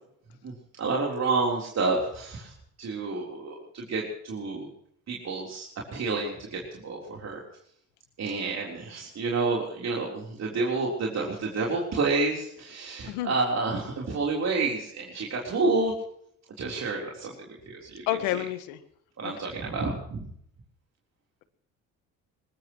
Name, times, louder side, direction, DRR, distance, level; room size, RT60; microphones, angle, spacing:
voice 1, 0.8-2.5 2.8-4.7 5.1-7.4 8.2-15.9 16.6-18.5 19.2-20.3, right 3 dB, 50° right, -2 dB, 3.9 m, -29 dB
voice 2, 18.1-18.8 19.2-19.3, left 14 dB, 85° left, 11 dB, 1.5 m, -29 dB
21.0 x 21.0 x 3.1 m, 0.69 s
supercardioid pair, 70°, 35 cm